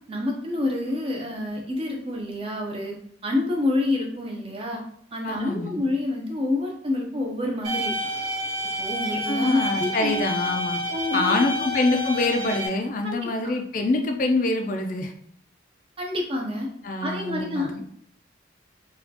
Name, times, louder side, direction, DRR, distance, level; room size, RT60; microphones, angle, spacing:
voice 1, 0.1-3.0 3.2-4.8 5.1-7.9 8.8-10.3 10.9-11.7 13.0-13.5 16.0-16.7 17.0-17.7, left 2 dB, 30° right, 0 dB, 0.6 m, -28 dB
voice 2, 5.2-5.8 9.3-10.8 11.1-15.1 16.8-17.8, left 2 dB, 45° left, 5 dB, 0.3 m, -25 dB
sound 1, 7.6-12.7, equal, 70° right, 1.4 m, -29 dB
4.1 x 2.3 x 2.8 m, 0.64 s
head